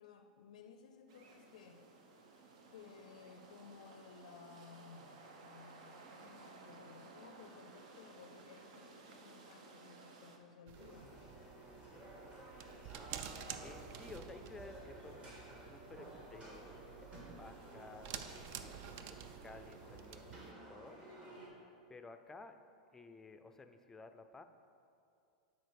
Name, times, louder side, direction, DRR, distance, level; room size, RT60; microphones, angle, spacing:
voice 1, 0.0-1.9 2.7-11.2 21.3-21.7, left 5 dB, 75° left, 6 dB, 0.4 m, -58 dB
sound 1, 1.1-10.4, right 3 dB, 70° right, 0.8 m, -57 dB
sound 2, 10.7-21.5, right 1 dB, 30° right, 1.8 m, -54 dB
sound 3, 10.7-20.5, right 8 dB, 50° right, 0.4 m, -51 dB
voice 2, 13.6-18.7 19.0-21.0 21.9-22.6 22.9-24.4, left 3 dB, 10° left, 8 dB, 0.4 m, -55 dB
9.3 x 4.3 x 4.7 m, 2.5 s
hypercardioid pair, 110°, 4 cm